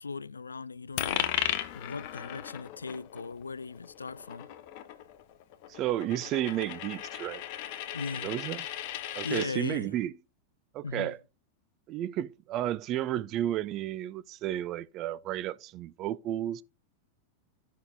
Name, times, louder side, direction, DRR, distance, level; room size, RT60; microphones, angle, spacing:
voice 1, 0.0-4.5 7.9-8.4 9.0-9.9 10.8-11.1, left 4 dB, 75° left, 0.3 m, -38 dB
Coin (dropping), 1.0-9.5, left 12 dB, 45° left, 0.8 m, -36 dB
voice 2, 5.7-7.4 8.2-8.7 9.2-10.1 10.7-11.2 11.9-16.6, right 13 dB, 35° right, 0.4 m, -32 dB
15.5 x 5.6 x 2.2 m
figure-of-eight pair, 90°, 0 cm